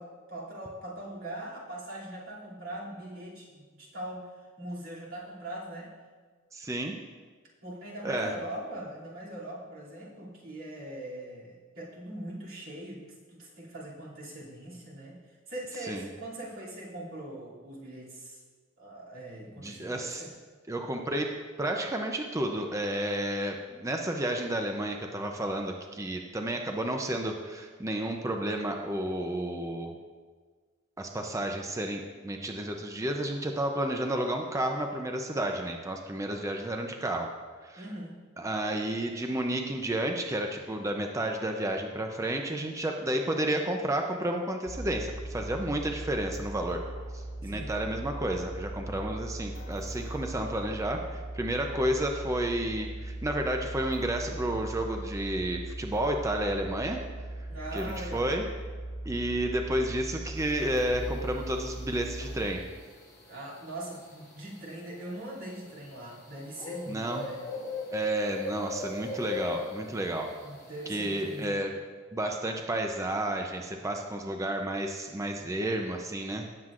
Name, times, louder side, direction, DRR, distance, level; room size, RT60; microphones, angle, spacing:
voice 1, 0.0-4.3 4.6-5.9 7.6-13.0 13.3-15.2 15.5-18.4 18.8-20.3 37.8-38.2 47.4-47.7 57.5-58.3 63.2-67.4 70.4-71.8, right 1 dB, 85° right, -6 dB, 2.7 m, -41 dB
voice 2, 6.5-6.9 8.0-8.3 15.8-16.1 19.5-20.2 20.7-29.9 31.0-37.3 37.6-37.8 38.4-46.8 47.1-57.0 57.7-58.5 59.1-62.7 66.9-67.2 67.9-70.3 70.9-71.7 72.1-76.5, right 1 dB, 15° right, 3 dB, 0.5 m, -31 dB
sound 1, 44.7-62.5, right 1 dB, 50° left, 2.5 m, -39 dB
sound 2, 60.4-71.4, left 3 dB, 20° left, 2.9 m, -41 dB
17.0 x 7.6 x 2.5 m, 1.5 s
head